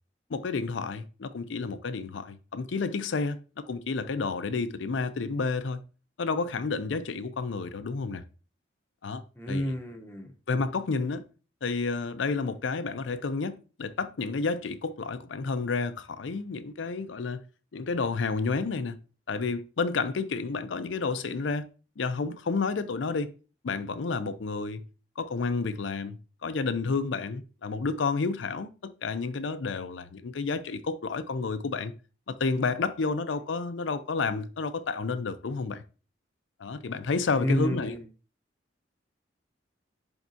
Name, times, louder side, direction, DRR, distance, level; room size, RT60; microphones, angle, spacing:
voice 1, 0.3-5.8 6.2-8.2 9.0-9.2 9.5-9.8 10.5-11.2 11.6-17.4 17.7-19.0 19.3-21.7 22.0-23.3 23.6-24.8 25.2-31.9 32.3-35.8 36.6-38.0, left 4 dB, 85° left, 0.5 m, -30 dB
voice 2, 9.4-10.3 37.4-38.0, equal, 10° left, 0.8 m, -30 dB
10.5 x 3.6 x 2.7 m
head